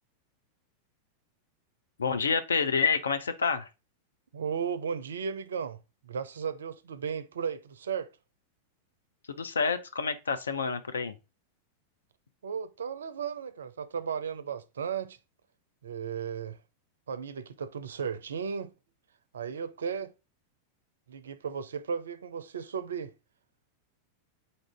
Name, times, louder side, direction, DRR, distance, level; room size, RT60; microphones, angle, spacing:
voice 1, 2.0-3.7 9.4-11.1, left 5 dB, 70° left, 0.6 m, -28 dB
voice 2, 4.3-8.1 12.4-15.2 15.8-16.6 17.1-18.7 19.3-20.1 21.1-23.1, right 6 dB, 65° right, 0.4 m, -35 dB
3.9 x 2.5 x 3.4 m
figure-of-eight pair, 90°, 0 cm